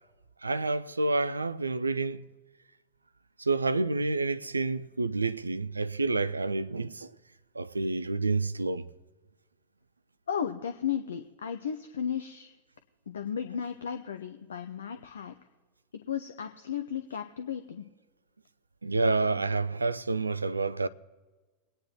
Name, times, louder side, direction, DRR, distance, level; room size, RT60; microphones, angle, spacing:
voice 1, 0.4-2.3 3.4-7.1 7.6-8.8 18.8-20.9, right 3 dB, 80° right, 0.4 m, -29 dB
voice 2, 10.3-12.5 13.1-15.3 16.1-17.8, left 8 dB, 65° left, 0.6 m, -34 dB
22.0 x 9.6 x 3.0 m
figure-of-eight pair, 90°, 0 cm